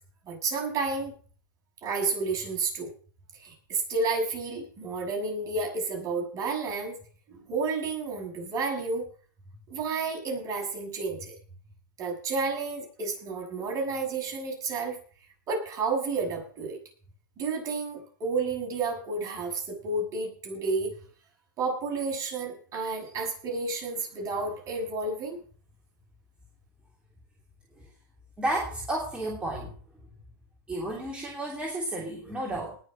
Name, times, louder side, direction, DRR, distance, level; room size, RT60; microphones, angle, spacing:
voice 1, 0.3-1.1 1.8-2.9 3.3-6.9 7.3-9.1 9.7-11.3 12.0-15.0 15.5-16.8 17.4-20.9 21.6-25.4, right 4 dB, 30° right, 1 dB, 6.9 m, -31 dB
voice 2, 28.4-29.7 30.7-32.8, right 1 dB, 10° right, -2 dB, 3.1 m, -32 dB
19.5 x 6.7 x 6.1 m, 0.43 s
hypercardioid pair, 120°, 11 cm